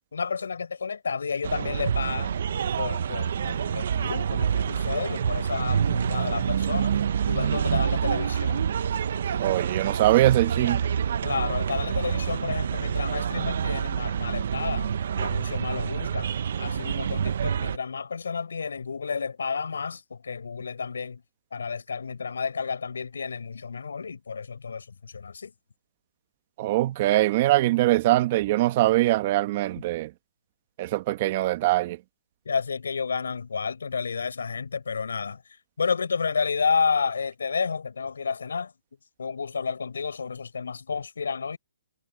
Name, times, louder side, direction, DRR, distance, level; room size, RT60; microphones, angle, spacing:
voice 1, 0.1-2.4 2.8-7.0 7.3-8.6 11.2-21.2 21.5-25.5 32.5-35.4 35.8-38.7 39.2-41.6, left 5 dB, 90° left, 7.0 m, -31 dB
sound 1, 1.4-17.8, right 8 dB, 55° right, 0.7 m, -27 dB
voice 2, 9.4-10.8 26.6-30.1 30.8-32.0, right 16 dB, 30° right, 1.0 m, -22 dB
hypercardioid pair, 165°, 0 cm